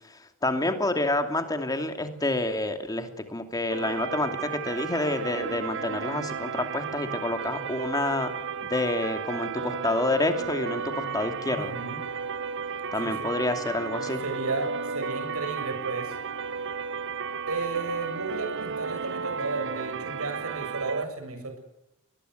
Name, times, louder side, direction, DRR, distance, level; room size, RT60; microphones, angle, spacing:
voice 1, 0.4-8.3 8.6-11.8 12.9-14.2, left 2 dB, 15° left, 6 dB, 2.7 m, -28 dB
sound 1, 3.7-21.0, right 6 dB, 60° right, 1.0 m, -34 dB
voice 2, 11.5-12.0 12.9-13.3 14.2-16.2 17.5-21.6, right 3 dB, 90° right, 7 dB, 7.2 m, -33 dB
23.0 x 21.0 x 8.0 m, 0.92 s
head